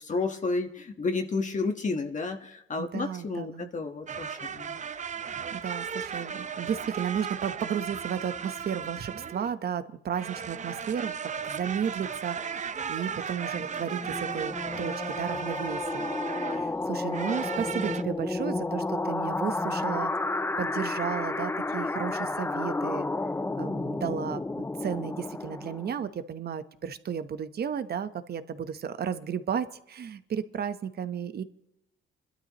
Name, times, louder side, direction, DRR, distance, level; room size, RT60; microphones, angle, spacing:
voice 1, 0.0-4.8, left 3 dB, 40° left, 4 dB, 1.4 m, -31 dB
voice 2, 2.8-3.7 5.5-11.2 11.4-16.1 16.5-20.1 20.6-23.1 23.6-31.4, right 8 dB, 55° right, 11 dB, 1.1 m, -33 dB
sound 1, 4.1-9.5 10.1-16.7 17.1-18.0, right 6 dB, 35° right, 0.7 m, -36 dB
sound 2, 13.5-26.1, left 2 dB, 10° left, 0.5 m, -32 dB
27.5 x 12.5 x 3.1 m, 0.82 s
cardioid pair, 90°, 20 cm